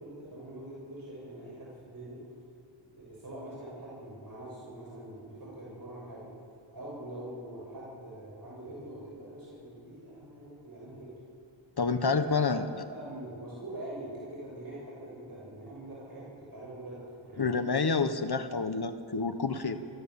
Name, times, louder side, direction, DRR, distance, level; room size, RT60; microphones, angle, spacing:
voice 1, 0.0-2.2 3.0-6.3 6.7-11.1 12.2-12.6 12.9-17.6 19.5-19.9, right 1 dB, 45° right, -6 dB, 7.0 m, -44 dB
voice 2, 11.8-12.7 17.4-19.8, left 4 dB, 55° left, 10 dB, 1.4 m, -28 dB
26.5 x 15.0 x 7.2 m, 2.3 s
wide cardioid pair, 80°, 47 cm